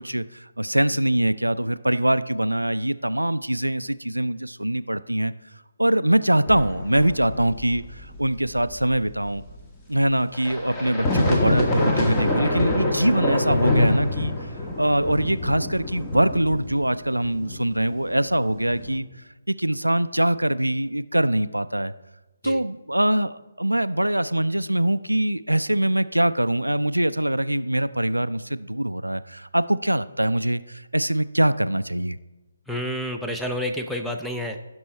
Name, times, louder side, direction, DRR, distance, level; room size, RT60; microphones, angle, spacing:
voice 1, 0.0-5.3 5.8-9.4 9.9-14.3 14.8-19.0 19.5-21.9 22.4-32.2, right 1 dB, 85° right, 14 dB, 0.4 m, -23 dB
sound 1, 6.5-9.6 10.3-19.0, left 2 dB, 15° left, 1.4 m, -26 dB
voice 2, 32.7-34.6, equal, ahead, 3 dB, 0.6 m, -29 dB
15.5 x 6.2 x 4.3 m, 1.1 s
figure-of-eight pair, 145°, 0 cm